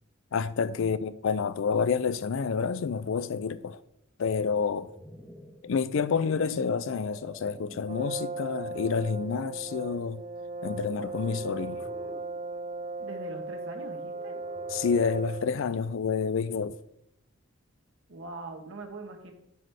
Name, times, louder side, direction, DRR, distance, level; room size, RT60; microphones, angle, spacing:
voice 1, 0.3-3.8 4.2-4.9 5.6-10.2 10.6-11.8 14.7-16.7, left 5 dB, 65° left, 0.4 m, -28 dB
sound 1, 4.5-8.1 8.8-9.0 10.8-12.3 14.0-15.5, equal, 10° left, 0.9 m, -49 dB
Brass instrument, 7.9-15.7, right 3 dB, 35° right, 0.5 m, -37 dB
voice 2, 13.0-14.4 18.1-19.3, right 2 dB, 65° right, 1.2 m, -42 dB
7.7 x 3.4 x 6.5 m
head